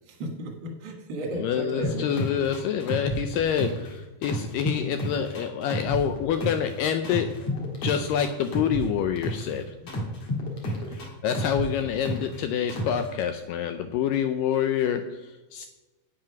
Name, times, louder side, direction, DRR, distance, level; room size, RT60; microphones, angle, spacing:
voice 1, 0.1-2.1 9.8-9.9 10.7-11.0, right 1 dB, 50° right, 2 dB, 1.4 m, -35 dB
voice 2, 1.3-9.7 11.2-15.7, left 8 dB, 85° left, 8 dB, 1.9 m, -27 dB
sound 1, 1.8-3.9 4.2-6.7 7.0-9.5 9.9-12.4 12.7-13.1, equal, 50° left, 2.6 m, -30 dB
8.9 x 7.6 x 5.8 m, 1.2 s
omnidirectional pair, 4.5 m